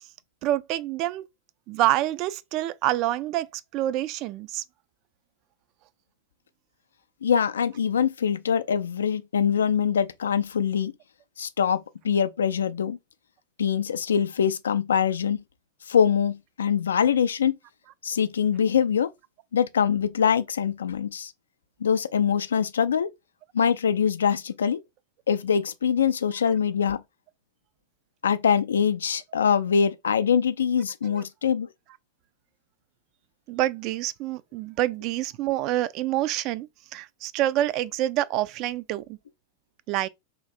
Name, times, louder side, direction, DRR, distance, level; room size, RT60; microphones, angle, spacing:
voice 1, 0.4-1.2 1.7-4.6 31.1-31.2 33.5-39.2 39.9-40.1, right 14 dB, 40° right, 0.3 m, -27 dB
voice 2, 7.2-10.9 11.4-13.0 13.6-15.4 15.9-17.6 18.0-19.1 19.5-21.3 21.8-23.1 23.5-24.8 25.3-27.0 28.2-31.7, left 7 dB, 70° left, 0.3 m, -23 dB
3.1 x 2.4 x 4.1 m
figure-of-eight pair, 90°, 0 cm